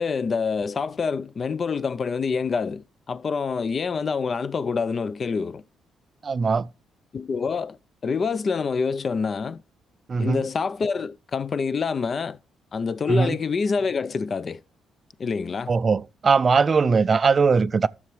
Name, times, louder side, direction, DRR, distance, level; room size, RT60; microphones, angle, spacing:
voice 1, 0.0-5.6 7.1-7.8 8.0-9.6 10.2-12.4 12.7-14.6 15.2-15.7, left 5 dB, 45° left, 0.4 m, -26 dB
voice 2, 6.2-6.7 10.1-10.5 13.1-13.4 15.7-17.9, right 5 dB, 40° right, 0.4 m, -20 dB
12.5 x 6.7 x 3.1 m
cardioid pair, 90°, 0 cm